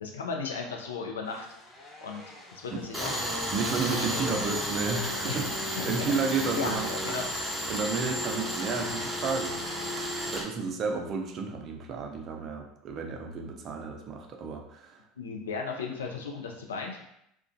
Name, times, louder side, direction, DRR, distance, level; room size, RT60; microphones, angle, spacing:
voice 1, 0.0-1.5 2.0-2.2 2.5-3.2 3.7-4.3 5.3-5.4 5.8-7.3 15.2-17.0, left 5 dB, 85° left, 1 dB, 0.4 m, -36 dB
sound 1, 1.2-10.0, left 1 dB, 30° left, 0.9 m, -49 dB
Tools, 2.9-10.4, equal, ahead, 0.6 m, -32 dB
voice 2, 3.5-7.2 7.7-9.6 10.3-15.0, right 5 dB, 45° right, 2 dB, 0.4 m, -32 dB
2.3 x 2.2 x 2.5 m, 0.76 s
hypercardioid pair, 75°, 0 cm